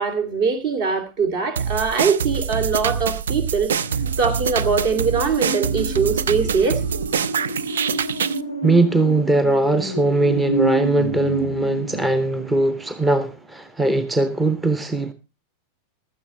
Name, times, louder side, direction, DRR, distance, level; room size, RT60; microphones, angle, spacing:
voice 1, 0.0-3.8 4.2-6.8, right 5 dB, 45° right, 2.5 m, -22 dB
sound 1, 1.6-8.4, right 7 dB, 65° right, 0.5 m, -25 dB
sound 2, 3.8-12.9 13.2-13.3, right 2 dB, 90° right, 2.3 m, -29 dB
voice 2, 8.6-15.1, right 2 dB, 10° right, 0.8 m, -20 dB
15.5 x 12.5 x 3.1 m
figure-of-eight pair, 90°, 0 cm